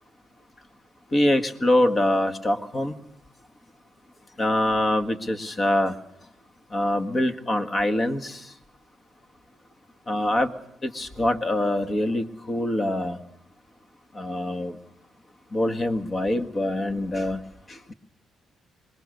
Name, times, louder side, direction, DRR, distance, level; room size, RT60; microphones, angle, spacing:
voice 1, 1.1-2.9 4.4-5.9 6.7-8.4 10.1-10.5 10.8-13.2 14.2-14.7 15.5-17.4, left 1 dB, 30° left, 1.8 m, -24 dB
27.0 x 21.5 x 6.6 m
cardioid pair, 90°, 0 cm